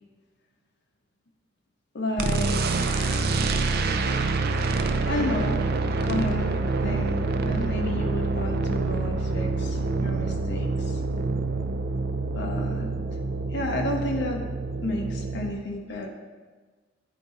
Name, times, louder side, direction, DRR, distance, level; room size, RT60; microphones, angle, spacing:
voice 1, 1.9-3.5 5.1-5.6 6.0-11.0 12.4-12.9 13.5-14.5 14.8-16.1, left 1 dB, 65° left, 2 dB, 0.7 m, -31 dB
sound 1, 2.2-15.5, right 3 dB, 55° right, 0.4 m, -26 dB
8.6 x 3.9 x 3.7 m, 1.4 s
head